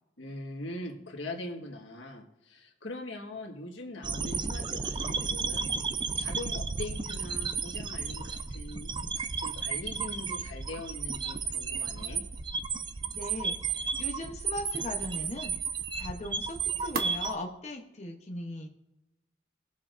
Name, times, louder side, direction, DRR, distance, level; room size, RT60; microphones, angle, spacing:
voice 1, 0.2-5.7 6.1-12.2, left 2 dB, 85° left, 2 dB, 1.5 m, -42 dB
sound 1, 4.0-17.3, right 5 dB, 25° right, 0.4 m, -33 dB
sound 2, 9.5-17.3, right 3 dB, 55° right, 1.1 m, -45 dB
voice 2, 13.1-18.7, left 1 dB, 35° left, 1 dB, 0.9 m, -39 dB
18.5 x 7.2 x 2.5 m, 0.93 s
head